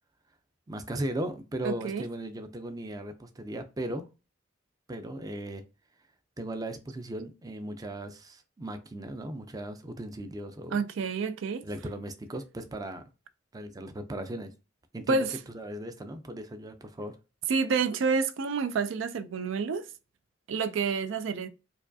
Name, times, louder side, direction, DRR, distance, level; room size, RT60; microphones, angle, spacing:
voice 1, 0.7-4.1 4.9-5.6 6.4-10.8 11.6-13.0 13.5-14.5 14.9-15.3 15.5-17.2, right 1 dB, 20° right, 0.4 m, -37 dB
voice 2, 1.6-2.1 10.7-11.6 15.1-15.4 17.5-19.9 20.5-21.5, right 4 dB, 80° right, 0.4 m, -29 dB
4.7 x 2.3 x 2.6 m
head